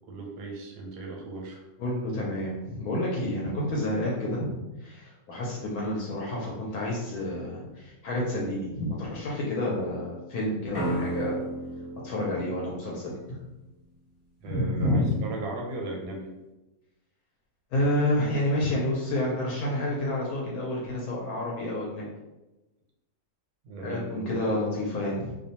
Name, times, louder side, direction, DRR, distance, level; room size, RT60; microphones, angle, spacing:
voice 1, 0.1-1.6 14.4-16.3 23.6-24.5, right 2 dB, 90° right, 0 dB, 1.2 m, -37 dB
voice 2, 1.8-11.4 12.0-13.4 14.5-15.2 17.7-22.1 23.8-25.4, left 1 dB, 75° left, -4 dB, 1.0 m, -29 dB
sound 1, 10.7-13.6, right 2 dB, 55° left, 0.6 m, -34 dB
2.6 x 2.1 x 2.7 m, 1.0 s
omnidirectional pair, 1.7 m